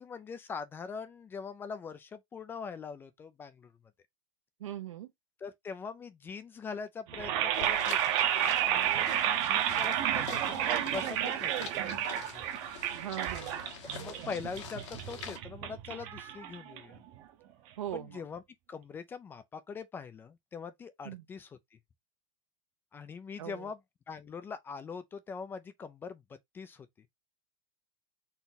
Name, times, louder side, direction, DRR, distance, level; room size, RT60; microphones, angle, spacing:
voice 1, 0.0-3.7 5.4-8.0 8.3-12.1 12.3-12.4 13.9-17.0 17.9-18.4 18.7-21.8 22.9-23.8 24.1-26.2 26.5-27.1, left 5 dB, 15° left, 0.4 m, -43 dB
voice 2, 4.6-5.1 12.9-13.6 17.8-18.2 21.0-21.2 23.4-23.6, right 11 dB, 85° right, 1.0 m, -40 dB
sound 1, 7.1-17.2, right 11 dB, 40° right, 0.8 m, -31 dB
sound 2, 7.5-15.4, left 7 dB, 70° left, 1.5 m, -46 dB
4.1 x 2.7 x 4.0 m
supercardioid pair, 150°, 16 cm